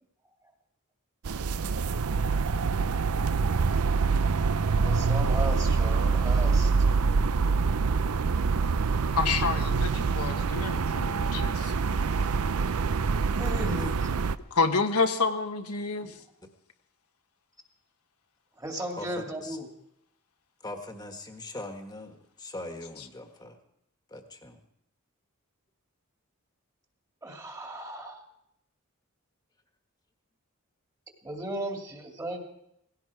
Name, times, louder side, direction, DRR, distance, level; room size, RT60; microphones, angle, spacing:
sound 1, 1.3-14.4, right 4 dB, 85° right, 0.6 m, -25 dB
voice 1, 4.8-6.7 13.3-14.1 16.0-16.1 18.6-19.7 27.2-28.2 31.2-32.4, right 1 dB, 15° right, 2 dB, 2.3 m, -36 dB
voice 2, 9.1-11.7 14.5-16.2, left 4 dB, 85° left, 6 dB, 1.3 m, -28 dB
voice 3, 18.9-19.6 20.6-23.6 24.1-24.6, left 2 dB, 20° left, 5 dB, 1.6 m, -41 dB
17.5 x 16.5 x 4.8 m, 0.78 s
head